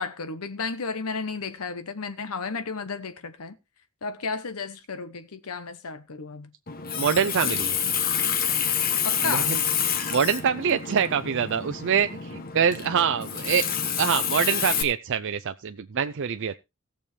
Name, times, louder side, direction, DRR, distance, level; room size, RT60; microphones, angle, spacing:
voice 1, 0.0-3.6 4.0-6.5 9.0-9.6, left 4 dB, 85° left, 0.9 m, -33 dB
Water tap faucet, 6.7-14.8, left 7 dB, 45° left, 1.1 m, -28 dB
voice 2, 7.0-7.7 9.2-9.6 9.9-13.6 14.0-16.6, right 7 dB, 55° right, 0.5 m, -25 dB
17.5 x 7.0 x 3.3 m
head